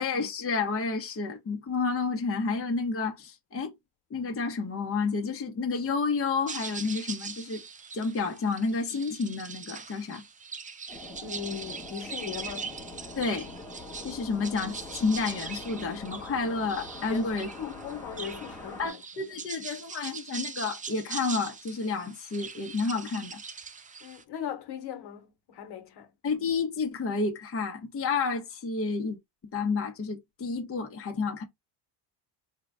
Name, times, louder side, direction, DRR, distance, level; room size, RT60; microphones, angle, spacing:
voice 1, 0.0-3.7 4.1-7.6 7.9-10.2 13.2-13.5 14.0-17.5 18.8-23.4 26.2-29.2 29.5-31.4, left 4 dB, 30° left, 1.2 m, -30 dB
sound 1, 6.5-24.2, right 5 dB, 15° right, 0.5 m, -41 dB
sound 2, 10.9-18.9, left 2 dB, 5° left, 1.3 m, -44 dB
voice 2, 11.2-12.7 17.1-17.3 17.6-19.0 24.0-26.1, left 9 dB, 55° left, 1.4 m, -38 dB
3.9 x 2.4 x 3.5 m
supercardioid pair, 90°, 47 cm